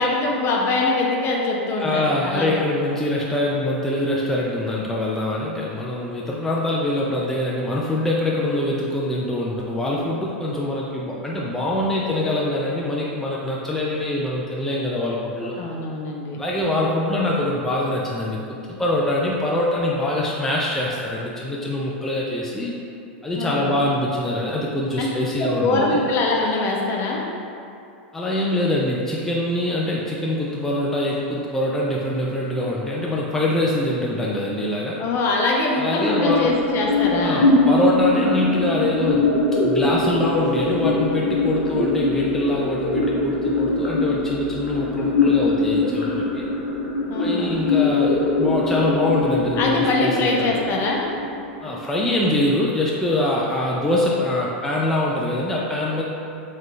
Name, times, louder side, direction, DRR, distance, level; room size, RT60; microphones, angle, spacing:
voice 1, 0.0-2.6 15.6-16.4 23.3-23.8 25.0-25.1 25.4-27.3 35.0-37.5 47.1-47.7 49.6-51.1, left 2 dB, 40° left, -1 dB, 0.7 m, -23 dB
voice 2, 1.8-15.6 16.4-22.7 23.2-26.0 28.1-35.0 35.8-36.5 37.2-39.4 39.6-46.5 47.2-50.5 51.6-56.0, left 1 dB, 5° left, -4 dB, 0.4 m, -24 dB
sound 1, 36.1-52.0, left 2 dB, 90° left, 0.7 m, -22 dB
3.9 x 3.2 x 3.2 m, 2.6 s
hypercardioid pair, 105°, 6 cm